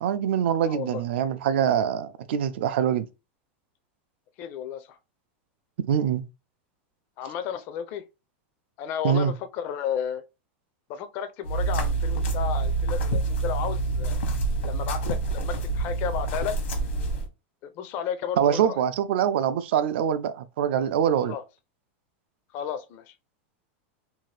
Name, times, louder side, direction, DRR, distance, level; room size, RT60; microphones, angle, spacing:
voice 1, 0.0-3.1 5.9-6.2 9.0-9.3 18.4-21.3, right 9 dB, 70° right, 0.4 m, -24 dB
voice 2, 0.6-1.0 4.4-5.0 7.2-8.0 8.8-10.2 10.9-14.2 14.6-16.6 17.6-18.8 21.2-21.4 22.5-23.1, left 8 dB, 30° left, 0.4 m, -33 dB
sound 1, 11.4-17.3, right 3 dB, 80° left, 1.0 m, -27 dB
2.7 x 2.4 x 3.2 m
supercardioid pair, 175°, 6 cm